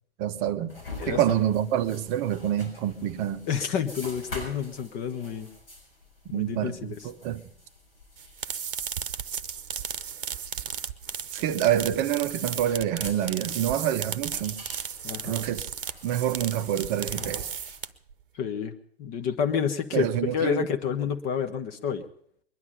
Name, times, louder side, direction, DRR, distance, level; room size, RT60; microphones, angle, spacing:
voice 1, 0.2-0.8 1.1-3.5 6.3-6.8 7.0-7.5 11.3-14.6 15.2-15.7 16.0-17.5 19.9-20.7, right 11 dB, 30° right, 0.8 m, -27 dB
sound 1, 0.7-17.9, left 2 dB, 65° left, 6.6 m, -46 dB
voice 2, 3.5-5.5 6.3-7.0 15.0-15.4 18.3-22.1, left 7 dB, 30° left, 1.0 m, -29 dB
sound 2, 8.2-18.1, right 8 dB, 60° right, 0.9 m, -35 dB
22.5 x 11.0 x 5.3 m
figure-of-eight pair, 110°, 31 cm